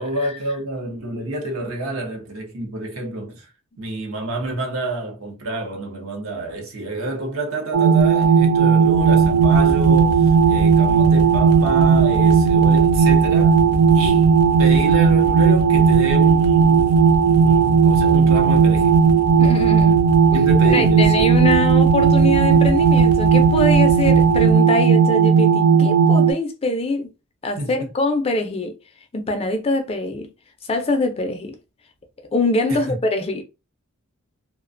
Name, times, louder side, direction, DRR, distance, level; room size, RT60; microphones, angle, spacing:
voice 1, 0.0-3.5 3.8-13.6 13.9-17.0 17.3-18.9 20.3-22.0 27.6-27.7 32.7-33.0, right 2 dB, 65° right, 0.7 m, -29 dB
sound 1, 7.7-26.3, right 6 dB, 90° right, 0.4 m, -15 dB
sound 2, 8.0-24.5, left 1 dB, 85° left, 0.5 m, -29 dB
voice 2, 19.4-20.0 20.7-27.1 27.4-28.7 29.1-30.3 30.7-31.6 32.3-33.4, left 2 dB, 25° left, 0.4 m, -23 dB
2.4 x 2.1 x 2.5 m
head